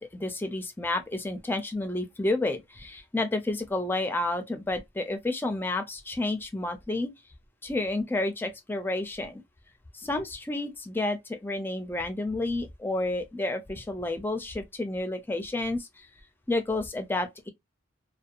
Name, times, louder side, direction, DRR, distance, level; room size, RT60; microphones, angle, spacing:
voice 1, 0.0-7.1 7.6-9.4 9.9-16.1 16.5-17.5, left 2 dB, 10° left, 0.4 m, -30 dB
2.7 x 2.1 x 2.4 m
head